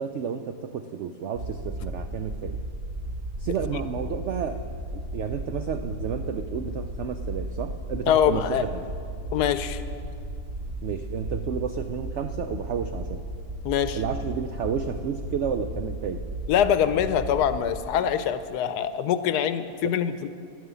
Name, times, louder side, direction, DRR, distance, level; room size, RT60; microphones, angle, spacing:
voice 1, 0.0-2.6 3.4-4.6 4.9-8.8 10.8-13.2 13.9-16.2 19.8-19.9, right 7 dB, 75° right, 7 dB, 0.6 m, -31 dB
sound 1, 1.3-17.8, right 1 dB, 45° right, 1.0 m, -35 dB
voice 2, 8.1-8.6 9.3-9.8 13.6-14.0 16.5-20.3, left 9 dB, 75° left, 11 dB, 1.1 m, -24 dB
11.0 x 9.3 x 8.2 m, 2.3 s
omnidirectional pair, 1.8 m